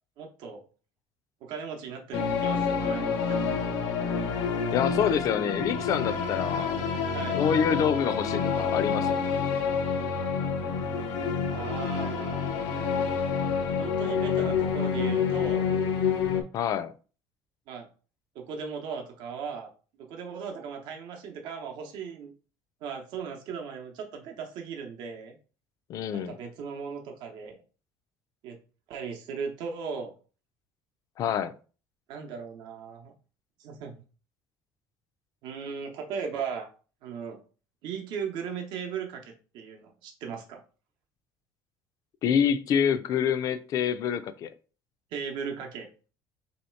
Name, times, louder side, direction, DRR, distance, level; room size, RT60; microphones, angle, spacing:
voice 1, 0.2-0.6 1.4-3.4 7.1-7.4 11.5-12.5 13.8-15.7 17.7-17.9 18.3-19.7 20.0-22.3 22.8-25.4 26.1-27.6 28.4-28.6 28.9-30.1 32.1-33.1 33.6-34.0 35.4-36.7 37.0-37.4 37.8-40.6 45.1-45.9, right 6 dB, 70° right, 0.7 m, -37 dB
sound 1, 2.1-16.4, left 6 dB, 90° left, 0.7 m, -28 dB
voice 2, 4.7-6.8 7.2-9.2 16.5-16.9 25.9-26.4 31.2-31.5 42.2-44.5, left 8 dB, 45° left, 0.3 m, -27 dB
3.1 x 2.8 x 4.4 m
cardioid pair, 155°, 8 cm